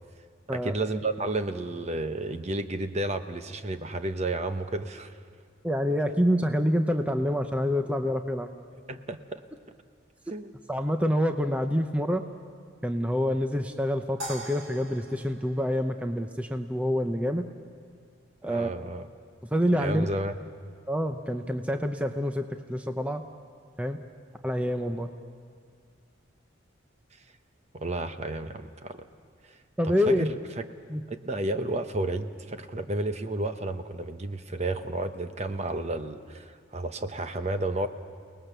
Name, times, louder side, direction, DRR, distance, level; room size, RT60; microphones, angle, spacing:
voice 1, 0.5-5.1 8.9-9.4 10.3-10.5 18.5-19.1 19.8-20.3 27.7-29.0 29.8-30.4 31.1-37.9, right 2 dB, 35° right, 8 dB, 0.9 m, -32 dB
voice 2, 5.6-8.5 10.7-12.2 12.8-17.5 18.4-18.7 19.5-20.1 20.9-23.2 23.8-24.0 24.4-25.1 29.8-30.3 30.9-31.0, equal, 5° right, 6 dB, 0.7 m, -27 dB
sound 1, 14.2-16.6, equal, 85° right, 3.5 m, -42 dB
30.0 x 19.5 x 6.8 m, 2.2 s
head